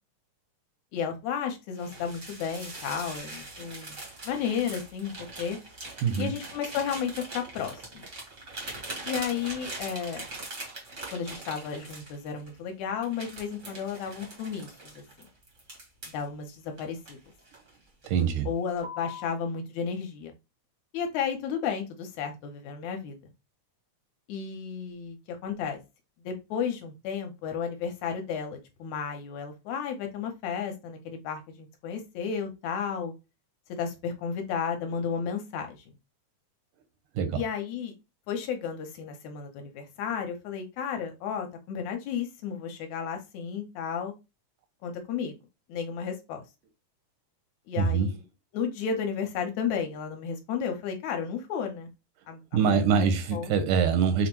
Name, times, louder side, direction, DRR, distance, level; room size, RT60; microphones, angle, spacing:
voice 1, 0.9-4.0 4.2-5.1 5.4-5.6 6.2-8.0 9.0-10.3 11.1-15.3 16.1-17.2 18.5-20.3 20.9-23.2 24.3-25.2 25.4-25.8 26.3-33.1 33.8-35.8 37.4-37.9 38.3-44.1 44.8-45.4 45.7-46.4 47.7-48.1 48.5-51.9 52.3-53.5, left 7 dB, 75° left, 1.9 m, -33 dB
sound 1, 1.8-12.5 13.0-16.2 16.8-17.7 18.0-18.3 18.8-19.3, right 2 dB, 60° right, 0.7 m, -42 dB
voice 2, 6.0-6.3 18.1-18.5 37.1-37.4 47.8-48.1 52.5-54.3, right 6 dB, 85° right, 2.2 m, -24 dB
5.4 x 2.0 x 2.9 m
omnidirectional pair, 3.5 m